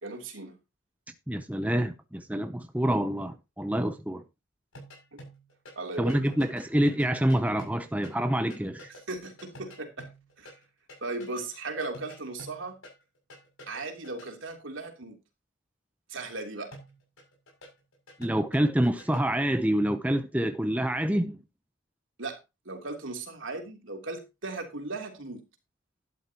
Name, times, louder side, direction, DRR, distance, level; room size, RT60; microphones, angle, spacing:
voice 1, 0.0-0.6 5.1-5.2 5.7-6.2 9.1-10.1 10.4-10.5 11.0-12.8 13.7-15.2 16.1-16.7 22.2-22.4 22.6-25.4, right 3 dB, 65° right, 3.1 m, -37 dB
voice 2, 1.3-4.2 6.0-8.9 18.2-21.4, right 1 dB, 5° right, 0.7 m, -27 dB
sound 1, 4.7-5.8 6.1-10.6 10.9-14.3 16.7-19.5, equal, 90° left, 6.8 m, -49 dB
12.0 x 11.5 x 2.9 m
head